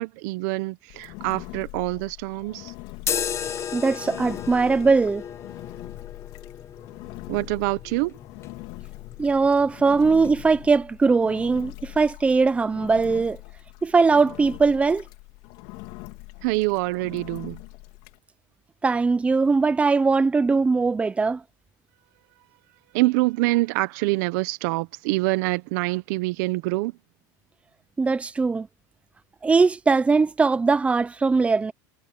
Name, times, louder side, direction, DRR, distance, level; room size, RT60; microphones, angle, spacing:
voice 1, 0.0-2.7 7.3-8.2 16.4-17.6 22.9-26.9, right 21 dB, 65° right, 1.1 m, -25 dB
Engine, 0.9-18.2, left 24 dB, 60° left, 4.2 m, -42 dB
sound 1, 3.0-10.8, left 8 dB, 25° left, 1.4 m, -35 dB
voice 2, 3.7-5.2 9.2-13.4 13.8-15.0 18.8-21.4 28.0-28.7 29.4-31.7, right 4 dB, 10° right, 1.0 m, -20 dB
supercardioid pair, 135°, 10 cm